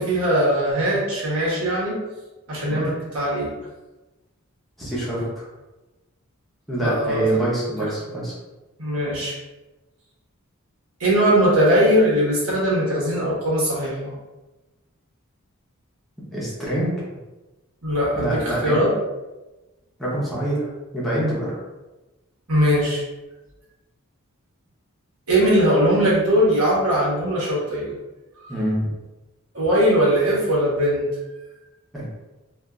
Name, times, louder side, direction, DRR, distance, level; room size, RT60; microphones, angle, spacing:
voice 1, 0.0-2.0 2.5-3.5 6.8-7.3 8.8-9.3 11.0-14.1 17.8-18.9 22.5-23.0 25.3-27.9 28.4-28.5 29.5-31.1, equal, 90° right, -6 dB, 1.2 m, -20 dB
voice 2, 4.8-5.4 6.7-8.3 16.3-16.9 18.2-18.9 20.0-21.5 28.5-28.9 31.9-32.1, right 1 dB, ahead, -9 dB, 0.8 m, -25 dB
3.4 x 2.5 x 2.4 m, 1.1 s
head